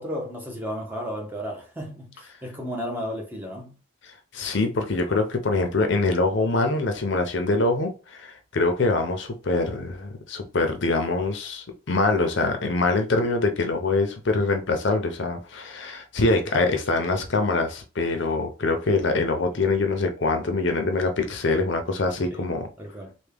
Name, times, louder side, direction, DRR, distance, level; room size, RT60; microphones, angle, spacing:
voice 1, 0.0-3.7 22.3-22.5 22.8-23.1, equal, 10° right, 0.7 m, -33 dB
voice 2, 4.3-22.7, left 3 dB, 55° left, 0.6 m, -24 dB
3.4 x 2.2 x 3.4 m
head